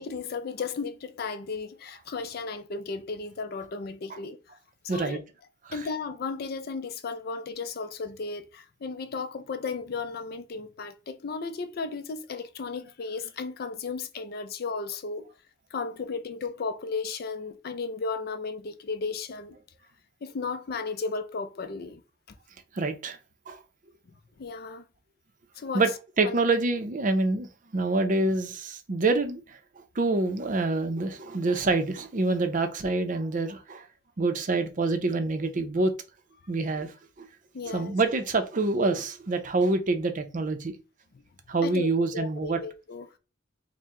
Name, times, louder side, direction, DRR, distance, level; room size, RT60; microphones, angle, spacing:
voice 1, 0.0-4.6 4.8-5.2 5.7-15.3 15.7-19.6 20.2-22.0 22.3-22.4 24.4-24.8 25.6-25.8 26.2-26.4 37.5-37.9 41.6-43.1, left 4 dB, 50° left, 0.4 m, -34 dB
voice 2, 4.9-5.2 5.6-5.9 22.7-23.2 23.5-23.6 25.7-25.9 26.2-29.6 30.0-33.9 34.2-35.9 36.5-36.9 37.2-37.3 37.6-40.7 41.5-42.6, right 3 dB, 45° right, 0.5 m, -26 dB
4.5 x 2.1 x 3.6 m
head